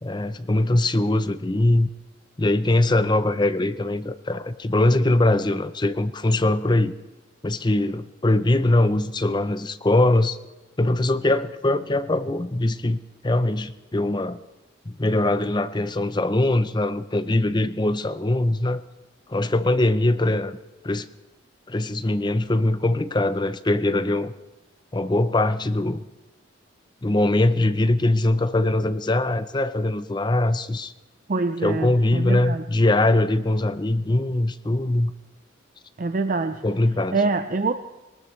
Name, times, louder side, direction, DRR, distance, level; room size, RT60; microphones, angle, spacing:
voice 1, 0.0-1.9 2.4-6.9 7.4-10.4 10.8-14.4 14.9-18.8 19.3-20.6 20.8-21.1 21.7-24.3 24.9-26.0 27.0-30.9 31.6-35.1 36.6-37.2, left 1 dB, 25° left, 12 dB, 0.6 m, -22 dB
voice 2, 31.3-32.6 36.0-36.6 37.1-37.7, right 3 dB, 45° right, 8 dB, 0.5 m, -25 dB
21.5 x 19.5 x 3.2 m, 1.1 s
head